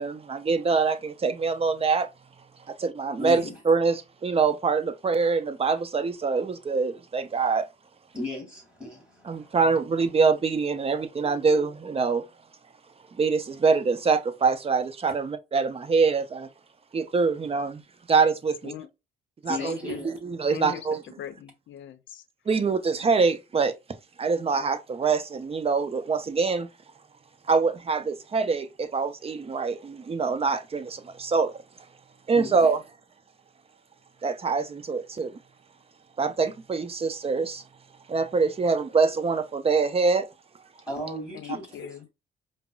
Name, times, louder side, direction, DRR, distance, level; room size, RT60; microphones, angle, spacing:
voice 1, 0.0-2.1 2.7-7.7 9.3-12.3 13.2-16.5 16.9-17.8 18.1-18.7 19.4-21.0 22.5-23.7 24.2-26.7 27.5-31.6 32.3-32.8 34.2-35.4 36.2-37.6 38.1-40.3, right 4 dB, 30° right, 0.6 m, -24 dB
voice 2, 3.2-3.6 8.1-9.5 19.5-20.2 32.3-32.7 40.9-42.0, left 2 dB, 5° right, 2.1 m, -36 dB
voice 3, 19.6-20.0 20.5-20.9 21.2-22.2 41.3-42.1, left 10 dB, 70° left, 0.6 m, -40 dB
5.1 x 2.0 x 2.2 m
cardioid pair, 90°, 20 cm